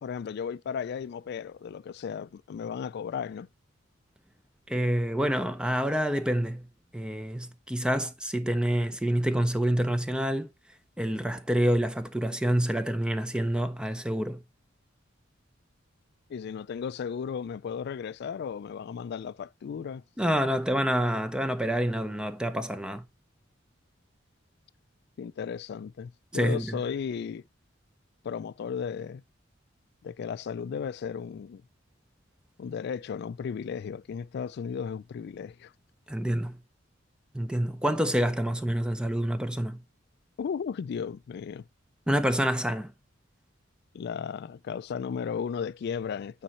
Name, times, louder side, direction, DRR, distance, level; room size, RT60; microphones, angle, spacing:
voice 1, 0.0-3.5 16.3-20.0 25.2-27.4 28.2-29.2 30.0-31.6 32.6-35.7 40.4-41.6 43.9-46.4, left 7 dB, 55° left, 0.3 m, -35 dB
voice 2, 4.7-6.7 6.9-10.5 11.0-14.4 20.2-23.0 26.3-26.8 36.1-36.6 37.3-39.8 42.1-42.9, equal, 5° right, 0.5 m, -27 dB
9.1 x 4.1 x 4.2 m
head